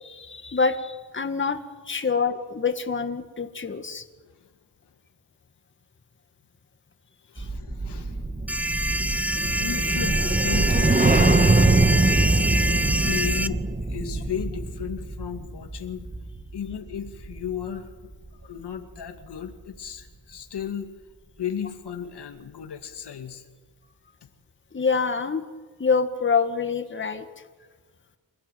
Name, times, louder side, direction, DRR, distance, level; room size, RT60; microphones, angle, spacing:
voice 1, 0.0-4.1 7.4-7.5 24.7-25.4 25.8-27.3, left 5 dB, 30° left, 7 dB, 1.9 m, -26 dB
voice 2, 7.3-8.2 9.6-11.5 13.0-16.1 16.5-17.9 18.4-20.9 21.4-23.4, left 8 dB, 90° left, 6 dB, 2.4 m, -34 dB
sound 1, 7.4-17.8 18.1-18.4, right 2 dB, 20° right, 1.8 m, -23 dB
sound 2, 8.5-13.5, right 1 dB, 5° right, 0.8 m, -26 dB
27.0 x 16.5 x 9.3 m, 1.4 s
wide cardioid pair, 110°, 39 cm